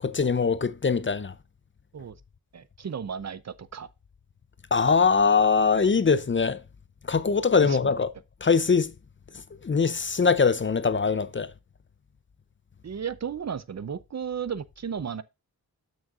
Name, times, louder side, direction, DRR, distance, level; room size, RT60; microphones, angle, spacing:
voice 1, 0.0-1.3 4.7-6.6 7.1-8.1 8.4-8.9 9.6-11.5, left 5 dB, 30° left, 0.6 m, -22 dB
voice 2, 2.5-3.9 7.6-7.9 12.8-15.2, right 7 dB, 45° right, 0.6 m, -34 dB
12.0 x 6.3 x 2.5 m
wide cardioid pair, 100°, 37 cm